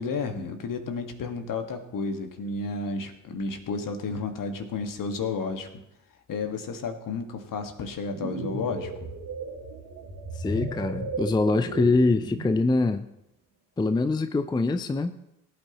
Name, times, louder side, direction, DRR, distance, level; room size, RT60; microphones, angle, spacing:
voice 1, 0.0-5.7 6.3-9.1, left 4 dB, 55° left, 6 dB, 1.7 m, -32 dB
sound 1, 7.9-12.7, right 3 dB, 55° right, 2.5 m, -35 dB
voice 2, 10.3-13.0 13.8-15.2, left 3 dB, 10° left, 11 dB, 0.5 m, -24 dB
18.0 x 8.7 x 3.0 m, 0.85 s
hypercardioid pair, 55°, 40 cm